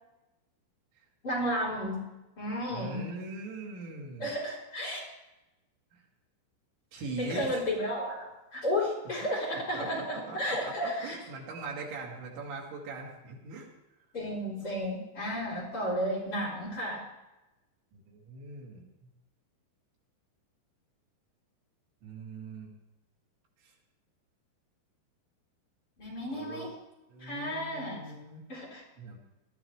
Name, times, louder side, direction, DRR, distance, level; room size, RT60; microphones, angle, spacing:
voice 1, 1.2-2.0 2.4-3.0 4.2-5.1 7.2-11.2 14.1-17.0 26.0-26.7 27.2-28.0 28.5-28.8, equal, 30° left, -5 dB, 4.1 m, -33 dB
voice 2, 2.7-4.3 5.9-6.0 6.9-7.6 9.2-9.4 9.7-13.7 17.9-18.8 22.0-22.7 23.6-23.7 26.3-26.7 27.1-28.4 29.0-29.2, right 3 dB, 80° right, -2 dB, 4.8 m, -41 dB
20.0 x 13.0 x 3.2 m, 0.98 s
omnidirectional pair, 5.2 m